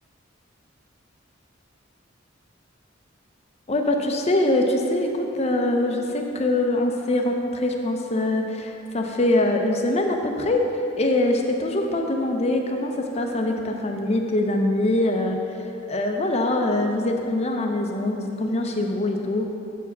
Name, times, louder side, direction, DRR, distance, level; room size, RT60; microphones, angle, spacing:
voice 1, 3.7-10.7 11.0-15.4 15.9-19.5, left 1 dB, 30° left, 3 dB, 0.6 m, -23 dB
7.0 x 4.8 x 5.8 m, 2.8 s
head